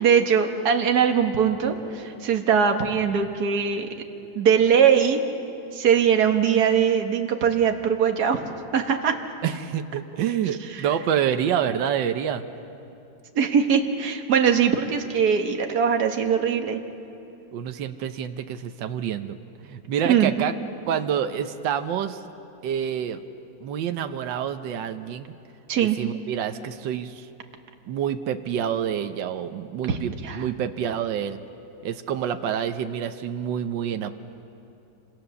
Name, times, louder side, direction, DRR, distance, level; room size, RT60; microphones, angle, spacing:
voice 1, 0.0-3.9 4.4-5.2 5.7-8.4 8.7-9.2 10.8-10.9 13.4-16.8 20.1-20.3 25.7-26.0 29.9-30.0 30.2-30.5, right 7 dB, 60° right, 4 dB, 1.9 m, -21 dB
voice 2, 9.4-12.4 17.5-20.5 20.9-22.2 22.6-23.2 23.6-25.4 25.8-27.3 27.9-31.4 31.8-34.1, right 9 dB, 75° right, 8 dB, 1.5 m, -27 dB
28.5 x 25.5 x 7.0 m, 2.8 s
omnidirectional pair, 2.0 m